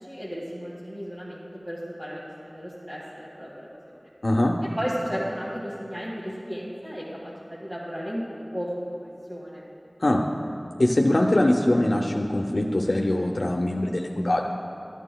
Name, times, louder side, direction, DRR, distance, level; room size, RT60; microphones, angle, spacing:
voice 1, 0.0-4.0 4.8-8.7 9.3-9.6, equal, 20° right, -7 dB, 1.7 m, -34 dB
voice 2, 4.2-4.5 10.0-10.2 10.8-14.4, left 1 dB, 75° left, 0 dB, 0.5 m, -22 dB
13.5 x 11.0 x 2.2 m, 2.6 s
wide cardioid pair, 45°, 0 cm